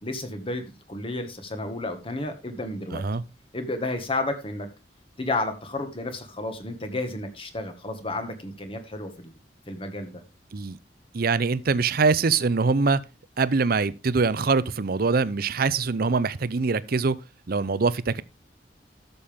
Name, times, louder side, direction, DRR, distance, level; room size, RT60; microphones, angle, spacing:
voice 1, 0.0-0.6 0.9-3.0 3.5-4.7 5.2-9.3 9.7-10.2, left 2 dB, 30° left, 1.8 m, -31 dB
voice 2, 2.9-3.2 10.5-10.8 11.1-13.0 13.4-17.2 17.5-18.2, right 4 dB, 55° right, 0.6 m, -23 dB
13.0 x 7.0 x 3.6 m
head